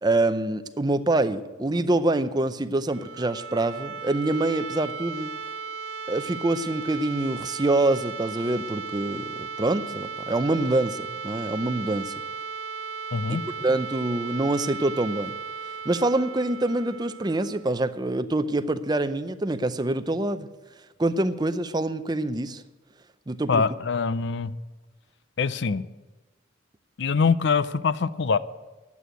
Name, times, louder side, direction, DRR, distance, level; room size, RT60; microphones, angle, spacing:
voice 1, 0.0-5.3 6.1-12.1 13.3-15.3 15.9-20.5 21.0-22.6 23.3-23.6, right 2 dB, 20° right, 11 dB, 0.5 m, -25 dB
sound 1, 2.8-18.5, right 5 dB, 80° right, 0.8 m, -36 dB
voice 2, 13.1-13.4 23.5-24.5 25.4-25.8 27.0-28.4, left 5 dB, 60° left, 15 dB, 0.5 m, -24 dB
11.0 x 8.4 x 9.1 m, 1.2 s
head